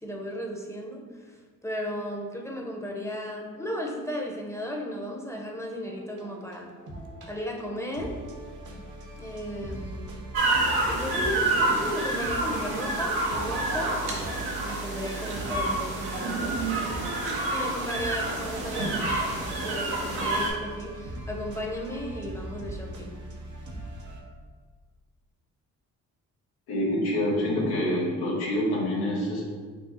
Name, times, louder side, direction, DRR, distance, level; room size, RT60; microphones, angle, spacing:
voice 1, 0.0-6.7 7.3-8.1 9.2-10.1 10.9-17.0 17.5-23.2, equal, 5° left, 0 dB, 0.8 m, -35 dB
sound 1, 5.8-24.2, right 1 dB, 50° right, 0.9 m, -40 dB
sound 2, 10.3-20.5, right 2 dB, 85° right, 0.9 m, -28 dB
voice 2, 26.7-29.4, left 1 dB, 85° left, -4 dB, 1.1 m, -26 dB
6.0 x 2.3 x 2.8 m, 1.5 s
supercardioid pair, 50°, 37 cm